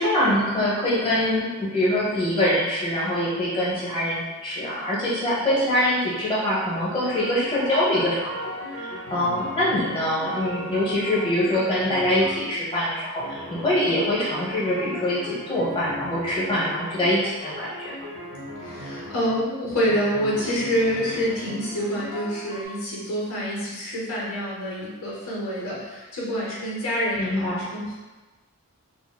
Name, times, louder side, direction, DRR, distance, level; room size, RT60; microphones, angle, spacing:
voice 1, 0.0-17.9 27.2-27.7, left 1 dB, 25° left, -7 dB, 0.8 m, -24 dB
sound 1, 7.0-12.6 13.2-19.5 19.8-22.6, equal, 50° right, 1.3 m, -37 dB
voice 2, 18.6-27.9, equal, 70° left, -6 dB, 0.7 m, -27 dB
3.5 x 2.0 x 2.2 m, 1.2 s
head